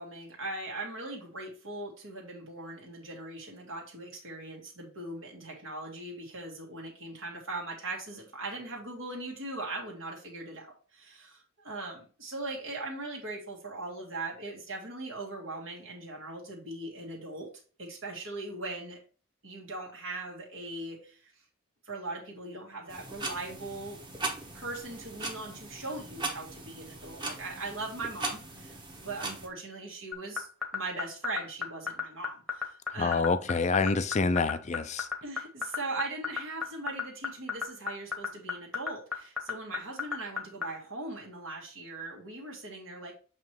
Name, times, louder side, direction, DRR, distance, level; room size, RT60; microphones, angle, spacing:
voice 1, 0.0-17.5 17.8-19.0 19.4-21.3 21.8-24.0 24.5-30.5 30.7-33.3 35.2-43.1, right 2 dB, 65° right, -2 dB, 1.7 m, -40 dB
sound 1, 22.9-29.5, right 3 dB, 20° right, 1.2 m, -39 dB
sound 2, 30.1-40.6, left 6 dB, ahead, 1.1 m, -31 dB
voice 2, 33.0-35.1, left 4 dB, 30° left, 13 dB, 0.4 m, -27 dB
7.3 x 3.1 x 4.5 m, 0.39 s
head